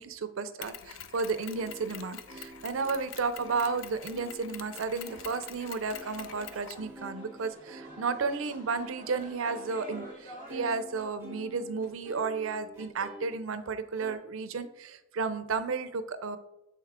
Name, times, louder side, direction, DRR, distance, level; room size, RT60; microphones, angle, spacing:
voice 1, 0.0-16.4, right 4 dB, 85° right, 12 dB, 0.5 m, -33 dB
Mechanisms, 0.6-6.9, left 9 dB, 85° left, 0.5 m, -46 dB
sound 1, 1.5-10.2 10.5-13.3 13.9-14.1, right 1 dB, 10° right, 1.3 m, -48 dB
sound 2, 4.9-10.8, equal, 40° left, 1.8 m, -49 dB
7.2 x 4.5 x 3.6 m, 0.91 s
head